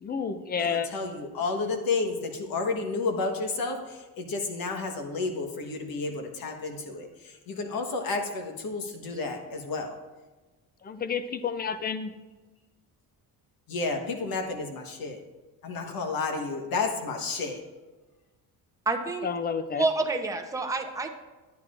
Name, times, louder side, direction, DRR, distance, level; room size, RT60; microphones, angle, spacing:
voice 1, 0.0-0.9 10.8-12.1 19.2-19.8, left 6 dB, 25° left, 12 dB, 0.5 m, -30 dB
voice 2, 0.6-9.9 13.7-15.2 15.6-17.6, left 3 dB, 65° left, 4 dB, 1.4 m, -31 dB
voice 3, 18.9-19.3 19.7-21.1, right 3 dB, 10° right, 3 dB, 0.8 m, -28 dB
10.5 x 9.3 x 2.5 m, 1.2 s
cardioid pair, 115°, 38 cm